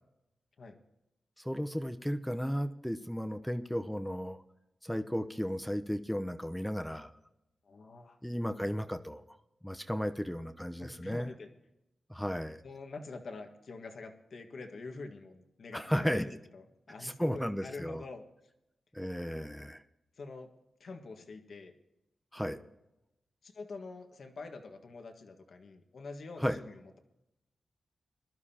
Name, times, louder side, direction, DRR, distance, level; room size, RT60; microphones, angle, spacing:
voice 1, 1.4-4.4 4.8-7.1 8.2-9.4 9.6-11.3 12.1-12.6 15.7-16.2 17.0-18.0 18.9-19.8 22.3-22.6 26.4-26.6, equal, 5° left, 8 dB, 0.8 m, -34 dB
voice 2, 7.6-8.2 10.2-10.3 10.8-11.5 12.6-18.2 20.2-20.5 20.8-21.7 23.4-27.0, left 3 dB, 70° left, 5 dB, 1.7 m, -46 dB
21.5 x 12.0 x 2.9 m, 0.90 s
cardioid pair, 65°, 0 cm